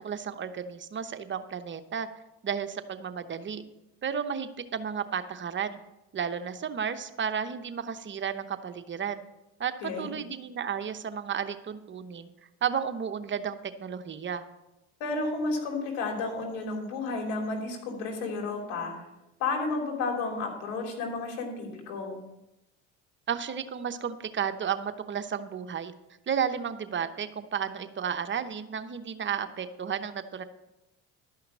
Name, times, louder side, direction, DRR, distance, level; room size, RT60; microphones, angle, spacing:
voice 1, 0.0-2.1 2.4-3.6 4.0-5.8 6.1-9.2 9.6-12.3 12.6-14.4 23.3-25.9 26.3-30.4, right 7 dB, 35° right, 9 dB, 0.9 m, -33 dB
voice 2, 15.0-18.9 19.4-22.2, left 3 dB, 80° left, 1 dB, 3.2 m, -32 dB
12.0 x 5.7 x 7.3 m, 0.94 s
supercardioid pair, 80°, 32 cm